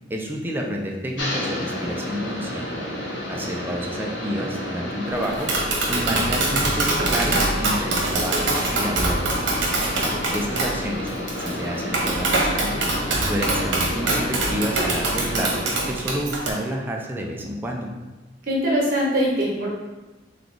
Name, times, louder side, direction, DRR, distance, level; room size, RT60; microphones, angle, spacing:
voice 1, 0.1-2.7 3.3-5.5 5.9-9.6 10.3-11.1 11.4-12.8 13.2-17.9, equal, 10° right, 0 dB, 0.5 m, -29 dB
sound 1, 1.2-15.9, left 1 dB, 75° left, 0.8 m, -31 dB
Tap, 5.2-16.5, right 2 dB, 75° right, 0.9 m, -24 dB
voice 2, 10.0-10.3 18.5-19.7, equal, 55° right, -4 dB, 1.1 m, -23 dB
3.4 x 3.2 x 3.9 m, 1.1 s
head